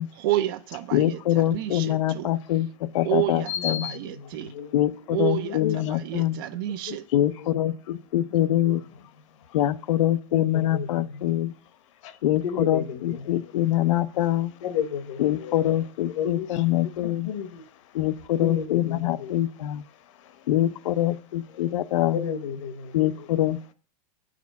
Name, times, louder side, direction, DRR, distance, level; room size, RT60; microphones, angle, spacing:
voice 1, 0.2-2.3 3.0-4.5 5.1-7.0, right 14 dB, 35° right, 0.4 m, -30 dB
voice 2, 0.9-3.9 4.7-6.4 7.1-8.8 9.5-11.5 12.2-14.5 15.2-17.3 17.9-19.8 20.5-22.3 22.9-23.7, left 13 dB, 75° left, 0.6 m, -24 dB
voice 3, 3.5-4.0 4.4-4.7 5.2-5.8 6.1-6.2 6.9-7.0 8.4-8.5 10.3-10.9 12.0-12.1 12.4-13.2 14.6-15.6 16.2-16.5 17.0-17.6 18.4-19.3 22.1-23.1, left 8 dB, 50° left, 1.0 m, -32 dB
8.3 x 5.0 x 6.9 m
supercardioid pair, 170°, 20 cm